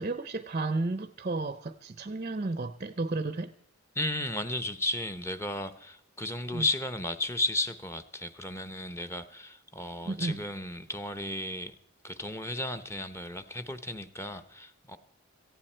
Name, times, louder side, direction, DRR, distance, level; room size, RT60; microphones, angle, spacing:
voice 1, 0.0-3.5 6.5-6.7 10.1-10.4, right 3 dB, 35° right, 0.6 m, -32 dB
voice 2, 3.9-11.7 12.0-15.0, left 1 dB, 10° left, 0.8 m, -34 dB
17.5 x 15.0 x 4.5 m
head